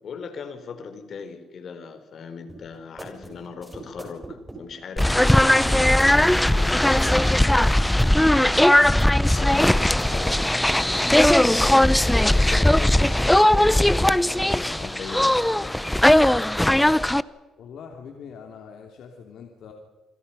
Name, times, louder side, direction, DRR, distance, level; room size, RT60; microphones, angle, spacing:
voice 1, 0.0-8.8 9.3-15.8, left 5 dB, 60° left, 9 dB, 3.8 m, -39 dB
sound 1, 2.5-10.4, right 2 dB, 10° right, 7.3 m, -41 dB
sound 2, 5.0-17.2, left 1 dB, 5° left, 0.8 m, -18 dB
voice 2, 17.6-19.7, left 6 dB, 75° left, 3 dB, 3.0 m, -43 dB
28.0 x 26.0 x 5.6 m, 1.3 s
cardioid pair, 90°, 0 cm